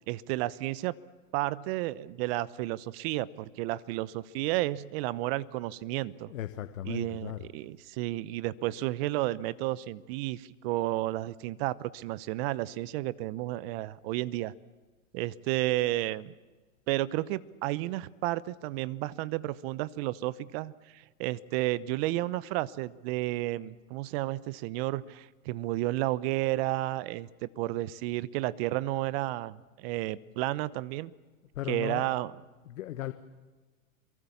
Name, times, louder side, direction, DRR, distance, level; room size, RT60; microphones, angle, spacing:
voice 1, 0.1-0.9 1.3-6.3 6.8-14.5 15.1-16.3 16.9-27.3 27.6-31.1 31.7-32.3, right 17 dB, 45° right, 18 dB, 1.0 m, -32 dB
voice 2, 6.3-7.5 31.5-32.1 32.7-33.1, left 13 dB, 65° left, 9 dB, 1.4 m, -37 dB
26.5 x 23.5 x 7.3 m, 1.3 s
hypercardioid pair, 120°, 42 cm